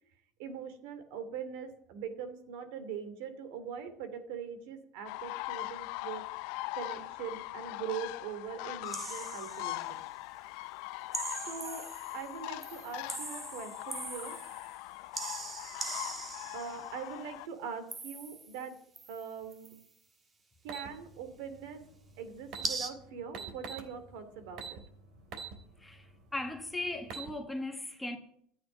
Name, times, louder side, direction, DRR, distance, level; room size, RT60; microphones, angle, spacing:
voice 1, 0.4-6.2 6.7-10.1 11.5-11.9 12.1-14.4 16.5-18.8 19.1-19.8 20.6-21.9 22.2-24.8, right 7 dB, 75° right, 2.7 m, -42 dB
sound 1, 5.1-17.5, left 20 dB, 70° left, 0.6 m, -41 dB
sound 2, 8.9-9.8 11.1-12.3 12.6-14.8 15.1-16.9 17.9-18.6 19.0-19.8 22.6-22.9, right 3 dB, 20° right, 1.5 m, -41 dB
sound 3, 20.7-20.9 22.1-22.2 22.4-22.7 23.3-23.9 24.6-24.8 25.3-25.5 26.0-26.1 26.9-27.3, right 5 dB, 50° right, 3.1 m, -41 dB
voice 2, 25.8-28.2, left 2 dB, 5° left, 1.7 m, -38 dB
12.0 x 9.4 x 9.9 m
supercardioid pair, 140°, 0 cm